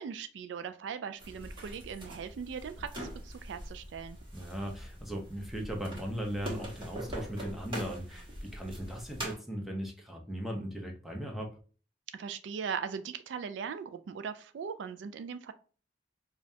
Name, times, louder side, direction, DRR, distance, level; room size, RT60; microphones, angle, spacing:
voice 1, 0.0-4.2 12.1-15.5, right 6 dB, 75° right, 10 dB, 0.3 m, -39 dB
sound 1, 1.2-9.3, right 1 dB, 30° right, 1.2 m, -43 dB
voice 2, 4.3-11.6, equal, ahead, 0 dB, 0.7 m, -38 dB
5.1 x 2.4 x 2.7 m, 0.39 s
head